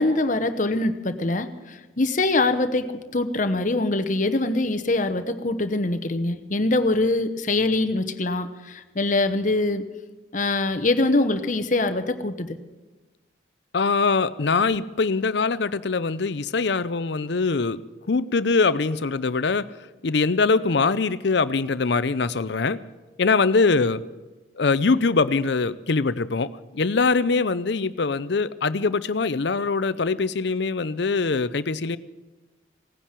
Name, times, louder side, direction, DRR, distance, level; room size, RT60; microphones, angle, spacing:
voice 1, 0.0-9.8 10.3-12.6, left 2 dB, 40° left, 9 dB, 1.0 m, -23 dB
voice 2, 13.7-17.8 18.1-19.6 20.0-22.8 23.2-24.0 24.6-32.0, left 4 dB, 65° left, 16 dB, 0.6 m, -23 dB
17.5 x 10.0 x 7.5 m, 1.2 s
head